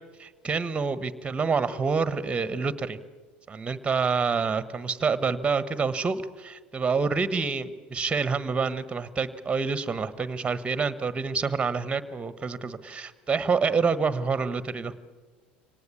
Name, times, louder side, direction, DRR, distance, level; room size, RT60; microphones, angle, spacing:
voice 1, 0.2-3.0 3.5-14.9, right 5 dB, 20° right, 14 dB, 1.3 m, -27 dB
24.5 x 18.0 x 8.4 m, 1.4 s
hypercardioid pair, 75°, 5 cm